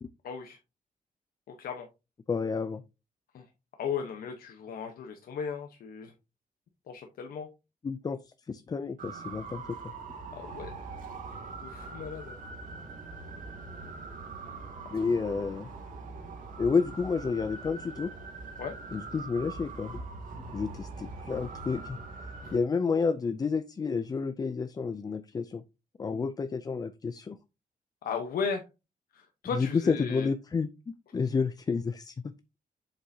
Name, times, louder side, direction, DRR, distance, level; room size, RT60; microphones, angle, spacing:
voice 1, 0.2-0.6 1.6-1.9 3.3-3.5 3.8-6.1 6.9-7.5 10.3-10.7 11.6-12.4 18.6-18.7 22.4-22.5 28.0-28.6 29.1-30.3, left 6 dB, 85° left, 5 dB, 1.0 m, -36 dB
voice 2, 2.3-2.8 7.8-9.9 14.9-15.7 16.6-18.1 18.9-20.0 20.5-22.0 22.5-25.6 26.0-27.4 29.5-32.3, left 5 dB, 25° left, 12 dB, 0.4 m, -30 dB
sound 1, 9.0-22.6, right 3 dB, 65° right, 2.5 m, -42 dB
7.7 x 6.5 x 2.8 m, 0.27 s
wide cardioid pair, 155°, 15 cm